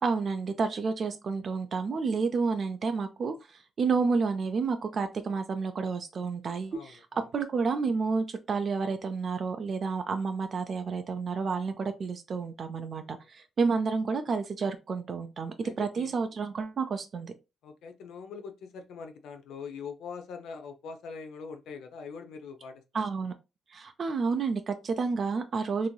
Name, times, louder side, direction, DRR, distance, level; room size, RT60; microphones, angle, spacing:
voice 1, 0.0-3.3 3.8-7.0 7.3-17.3 22.9-23.3 23.7-25.9, right 4 dB, 45° right, 0.4 m, -30 dB
voice 2, 6.7-7.2 15.6-16.2 17.6-22.8, left 5 dB, 80° left, 0.4 m, -43 dB
3.0 x 2.6 x 2.2 m
cardioid pair, 90°, 0 cm